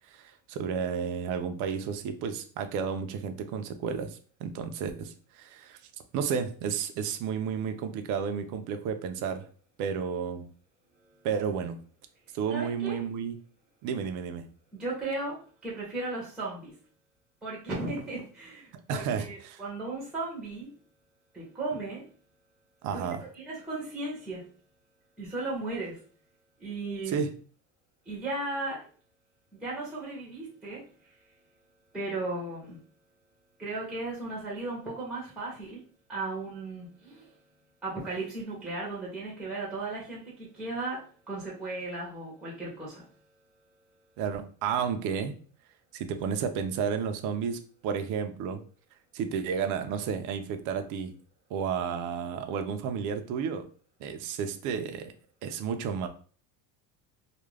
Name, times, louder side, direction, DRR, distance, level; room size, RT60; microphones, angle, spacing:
voice 1, 0.1-5.8 6.1-9.4 9.8-10.5 11.2-11.8 12.3-13.4 13.8-14.5 18.7-19.6 22.8-23.2 27.1-27.3 44.2-45.4 45.9-48.6 49.1-51.2 51.5-53.7 54.0-55.1 55.4-56.1, right 7 dB, 50° right, 8 dB, 0.4 m, -32 dB
voice 2, 12.5-13.0 14.7-16.8 17.4-20.7 21.3-22.1 22.9-23.1 23.3-24.5 25.2-26.0 26.6-27.2 28.1-28.9 29.5-30.9 31.9-32.8 33.6-35.8 36.1-37.3 37.8-43.1, right 2 dB, ahead, -4 dB, 0.6 m, -36 dB
2.4 x 2.1 x 3.2 m, 0.42 s
cardioid pair, 150°, 41 cm